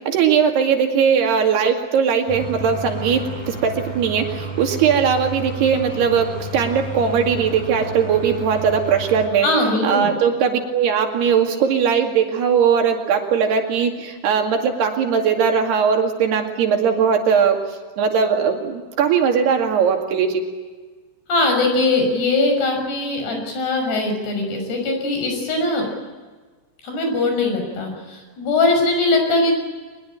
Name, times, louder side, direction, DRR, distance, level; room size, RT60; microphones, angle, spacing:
voice 1, 0.0-9.5 9.8-20.4, right 7 dB, 65° right, 3 dB, 4.2 m, -19 dB
sound 1, 2.3-9.3, right 2 dB, 5° left, 4.3 m, -32 dB
voice 2, 9.4-10.1 21.3-25.8 26.8-29.6, left 2 dB, 60° left, 3 dB, 8.2 m, -20 dB
23.5 x 21.5 x 9.0 m, 1.4 s
omnidirectional pair, 5.3 m